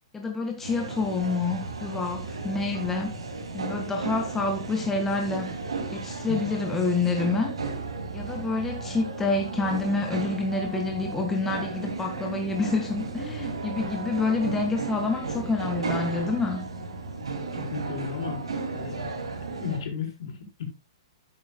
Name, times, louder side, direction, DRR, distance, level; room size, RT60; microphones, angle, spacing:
voice 1, 0.1-3.2 3.5-5.5 5.9-7.6 8.1-16.6, left 3 dB, 10° left, 1.8 m, -28 dB
sound 1, 0.6-19.8, right 3 dB, 75° right, 2.9 m, -34 dB
voice 2, 17.5-18.4 18.7-19.1 19.4-20.6, left 6 dB, 60° left, 4.7 m, -34 dB
12.0 x 9.8 x 2.3 m
figure-of-eight pair, 120°, 3 cm